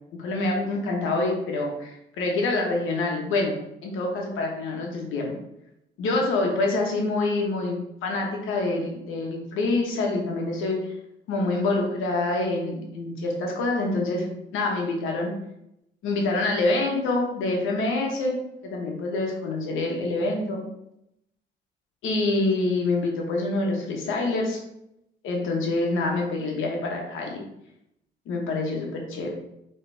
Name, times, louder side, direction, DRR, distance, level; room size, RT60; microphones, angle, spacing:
voice 1, 0.2-3.6 3.8-5.3 6.0-10.9 11.3-14.3 14.5-15.3 16.0-18.4 18.6-20.6 22.0-24.6 25.2-27.4 28.3-29.3, left 2 dB, 85° left, 0 dB, 1.1 m, -26 dB
4.7 x 3.3 x 3.4 m, 0.82 s
cardioid pair, 90°, 20 cm